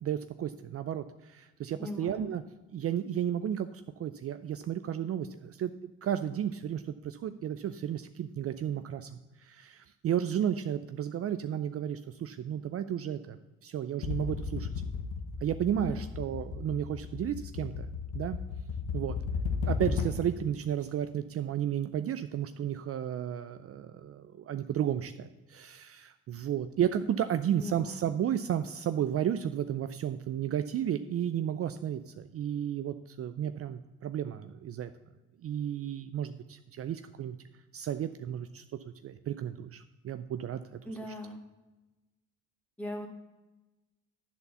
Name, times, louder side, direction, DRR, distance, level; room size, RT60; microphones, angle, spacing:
voice 1, 0.0-2.4 2.7-9.1 9.4-13.4 13.6-14.7 15.4-17.9 18.1-18.4 18.9-19.2 19.6-34.9 35.4-37.4 37.7-38.6 39.0-40.6, right 10 dB, 50° right, 10 dB, 0.5 m, -33 dB
voice 2, 1.8-2.3 15.8-16.0 27.6-28.0 40.9-41.4 42.8-43.1, left 1 dB, 5° left, 1 dB, 2.0 m, -39 dB
sound 1, 14.0-20.4, left 5 dB, 80° left, 1.0 m, -35 dB
10.5 x 4.2 x 6.9 m, 1.1 s
cardioid pair, 90°, 30 cm